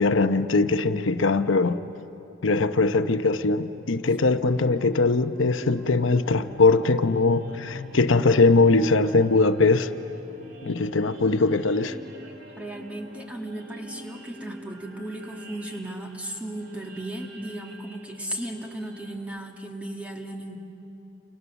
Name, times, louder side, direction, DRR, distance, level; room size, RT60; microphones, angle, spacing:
voice 1, 0.0-1.8 2.4-9.9 10.6-12.0, left 3 dB, 85° left, 9 dB, 0.8 m, -21 dB
sound 1, 2.4-19.2, left 1 dB, 55° right, 2.8 m, -45 dB
voice 2, 12.2-20.6, right 1 dB, 5° right, 2 dB, 1.8 m, -36 dB
29.0 x 28.0 x 7.0 m, 3.0 s
head